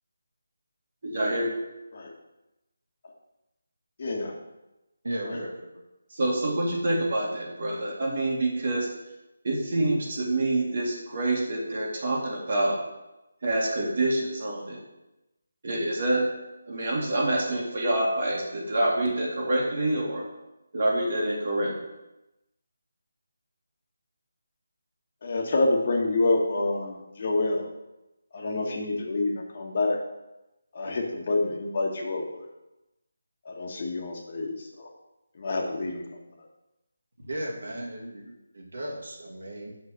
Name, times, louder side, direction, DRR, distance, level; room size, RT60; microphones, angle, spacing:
voice 1, 1.0-1.5 6.1-8.9 9.4-12.8 13.4-14.8 15.6-16.3 16.7-20.3 20.7-21.8, right 1 dB, 50° right, -3 dB, 2.1 m, -26 dB
voice 2, 4.0-4.3 5.2-5.4 25.2-27.7 28.3-30.0 30.7-32.5 33.4-34.9 35.4-36.0, left 2 dB, 45° left, 1 dB, 1.5 m, -27 dB
voice 3, 5.0-5.8 37.2-39.8, right 1 dB, 75° right, -1 dB, 2.1 m, -36 dB
6.1 x 5.2 x 6.5 m, 0.95 s
figure-of-eight pair, 160°, 0 cm